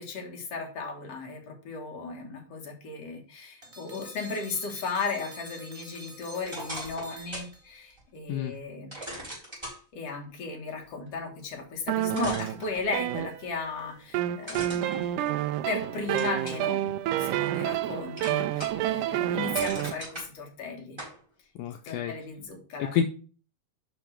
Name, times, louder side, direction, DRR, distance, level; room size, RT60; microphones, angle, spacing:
voice 1, 0.0-9.0 9.9-15.0 15.7-21.0 21.8-22.9, left 4 dB, 50° left, 2 dB, 2.3 m, -36 dB
sound 1, 3.6-7.9, right 1 dB, 25° right, 0.6 m, -47 dB
sound 2, 6.4-7.5 8.0-8.1 8.9-9.8 11.6-11.7 12.1-13.2 14.4-15.7 16.2-16.7 17.2-17.9 18.2-18.9 19.2-20.3 21.0-21.2, right 1 dB, 5° right, 4.1 m, -39 dB
sound 3, 11.9-13.7 14.1-19.9, right 13 dB, 80° right, 1.8 m, -29 dB
voice 2, 21.6-22.1 22.8-23.0, left 9 dB, 85° left, 7 dB, 1.8 m, -28 dB
7.0 x 5.6 x 4.5 m, 0.38 s
omnidirectional pair, 4.1 m